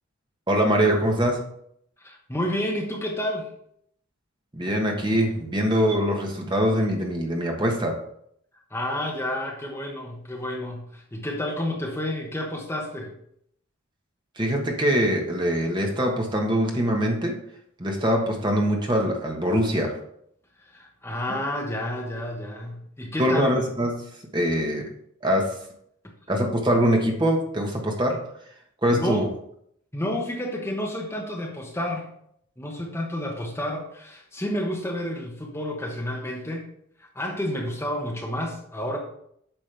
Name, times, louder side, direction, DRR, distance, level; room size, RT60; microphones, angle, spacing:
voice 1, 0.5-1.4 4.5-8.0 14.4-17.4 17.8-20.0 23.2-24.0 24.3-24.9 25.2-25.5 26.3-28.2 28.8-29.3, equal, 20° right, 1 dB, 1.2 m, -23 dB
voice 2, 2.0-3.5 8.7-13.1 20.6-23.5 28.9-29.3 29.9-32.1 32.6-36.7 37.0-39.0, left 1 dB, 10° left, 0 dB, 1.0 m, -30 dB
8.9 x 6.2 x 3.4 m, 0.69 s
head